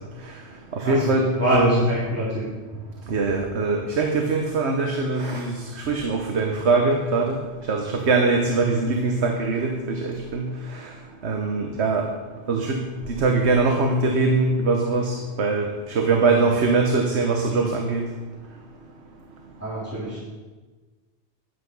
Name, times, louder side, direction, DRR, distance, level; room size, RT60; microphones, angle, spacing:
voice 1, 0.7-1.9 3.1-7.4 7.7-10.5 11.2-12.1 12.5-12.8 13.1-18.1, right 3 dB, 70° right, 2 dB, 1.3 m, -22 dB
voice 2, 1.4-2.4 19.6-20.2, equal, 10° right, -11 dB, 3.3 m, -24 dB
11.0 x 8.1 x 5.4 m, 1.3 s
omnidirectional pair, 1.2 m